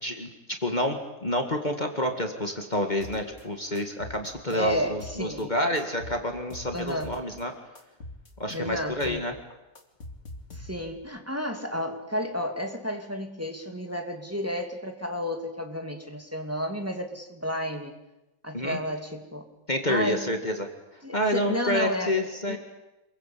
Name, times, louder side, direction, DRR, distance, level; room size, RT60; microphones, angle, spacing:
voice 1, 0.0-7.5 8.4-9.3 18.5-18.8 19.7-20.7 21.1-22.6, left 1 dB, 30° left, 4 dB, 2.2 m, -28 dB
sound 1, 3.0-3.4 3.8-5.4 5.8-7.4 7.8-9.3 9.5-11.0, left 1 dB, 55° left, 3.1 m, -43 dB
voice 2, 4.5-5.5 6.7-7.2 8.5-9.2 10.5-18.0 18.4-19.5 19.9-20.3 21.0-22.6, equal, 10° right, 4 dB, 2.8 m, -32 dB
28.0 x 22.0 x 8.6 m, 0.98 s
omnidirectional pair, 1.5 m